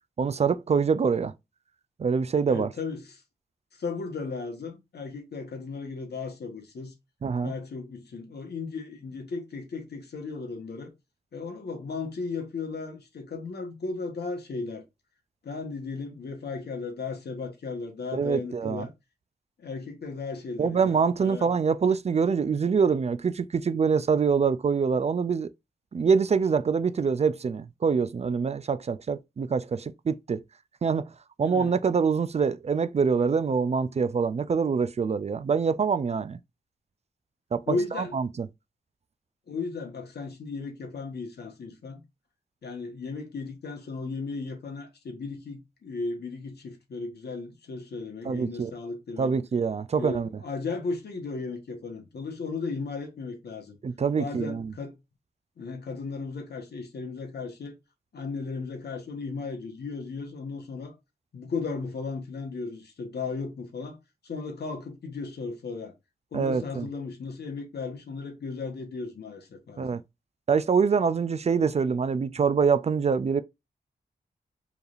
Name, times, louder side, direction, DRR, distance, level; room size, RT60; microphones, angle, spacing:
voice 1, 0.2-1.3 2.0-2.7 7.2-7.5 18.1-18.9 20.6-25.5 25.9-30.4 30.8-31.1 31.4-36.4 37.5-38.5 48.3-48.7 49.2-50.4 53.8-54.7 66.3-66.9 69.8-70.0 70.5-73.4, right 5 dB, 40° right, 0.4 m, -25 dB
voice 2, 2.5-3.2 3.8-6.9 7.4-10.9 11.3-14.8 15.4-18.9 19.6-21.5 31.4-31.7 37.7-38.1 39.5-42.0 42.6-49.3 50.0-53.8 54.2-55.0 55.6-57.8 58.1-60.9 61.3-64.0 64.2-65.9 66.3-70.0, left 4 dB, 75° left, 1.4 m, -35 dB
4.7 x 3.3 x 2.5 m
wide cardioid pair, 85°, 17 cm